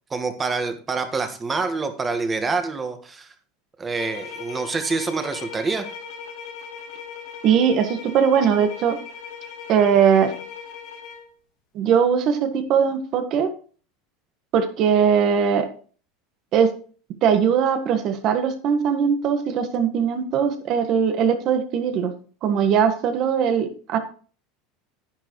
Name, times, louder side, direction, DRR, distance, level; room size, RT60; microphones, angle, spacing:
voice 1, 0.1-3.3 3.8-5.9, right 4 dB, 20° right, 8 dB, 1.6 m, -26 dB
sound 1, 4.0-11.3, left 6 dB, 65° left, 3.1 m, -38 dB
voice 2, 7.4-9.0 9.7-10.3 11.7-13.5 14.5-15.7 16.5-16.7 17.2-22.1 22.4-24.0, right 7 dB, 50° right, 8 dB, 1.6 m, -20 dB
10.5 x 9.8 x 3.2 m, 0.41 s
supercardioid pair, 120°, 0 cm